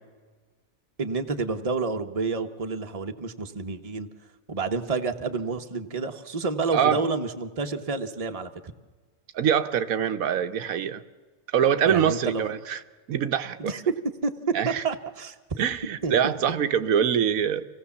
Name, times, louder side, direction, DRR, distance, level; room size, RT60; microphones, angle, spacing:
voice 1, 1.0-4.1 4.5-8.5 11.9-12.4 13.6-13.9 14.2-14.3 14.6-15.3 16.0-16.3, right 4 dB, 30° right, 6 dB, 1.1 m, -29 dB
voice 2, 6.7-7.0 9.3-11.0 11.5-12.8 13.1-13.7 14.5-14.8 15.6-17.7, right 8 dB, 85° right, 9 dB, 1.3 m, -24 dB
26.0 x 18.0 x 7.1 m, 1.4 s
omnidirectional pair, 1.4 m